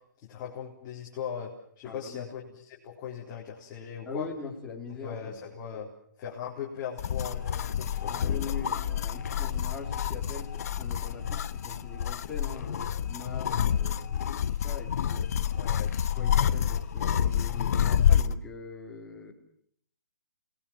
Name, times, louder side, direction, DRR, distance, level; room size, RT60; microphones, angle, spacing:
voice 1, 0.2-4.3 5.0-5.9 6.2-8.5 15.6-15.9, left 8 dB, 25° left, -4 dB, 4.1 m, -39 dB
voice 2, 1.8-2.3 4.0-5.4 8.1-15.3 16.2-19.3, left 4 dB, 5° left, -3 dB, 3.8 m, -42 dB
sound 1, 7.0-18.3, left 9 dB, 50° left, 1.1 m, -28 dB
29.5 x 20.0 x 7.5 m, 0.66 s
hypercardioid pair, 160°, 11 cm